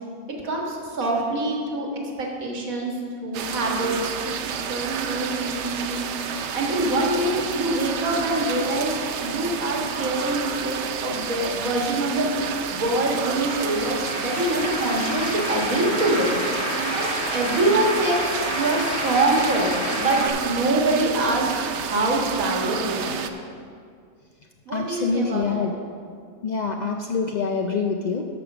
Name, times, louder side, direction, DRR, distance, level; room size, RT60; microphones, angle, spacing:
voice 1, 0.4-1.9 2.2-2.9 3.2-6.0 6.5-12.3 12.7-16.3 16.9-21.5 21.8-23.2 24.7-25.7, right 2 dB, 90° right, -1 dB, 2.0 m, -25 dB
sound 1, 3.3-23.3, right 7 dB, 65° right, 0.8 m, -30 dB
sound 2, 11.0-20.3, left 1 dB, 25° left, 1.8 m, -31 dB
voice 2, 24.7-25.7 26.4-28.3, left 4 dB, 75° left, 3 dB, 0.4 m, -25 dB
13.0 x 5.1 x 5.9 m, 2.2 s
omnidirectional pair, 1.4 m